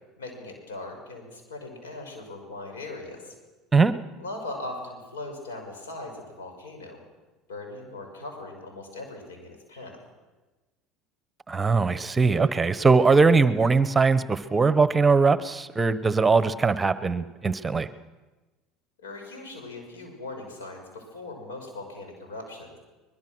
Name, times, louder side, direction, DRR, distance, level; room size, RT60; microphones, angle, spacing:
voice 1, 0.2-3.4 4.2-7.0 7.5-10.0 19.0-22.8, left 2 dB, 85° left, 3 dB, 5.9 m, -39 dB
voice 2, 11.5-17.9, right 4 dB, 20° right, 14 dB, 1.1 m, -21 dB
23.0 x 21.0 x 6.3 m, 1.2 s
hypercardioid pair, 75°, 0 cm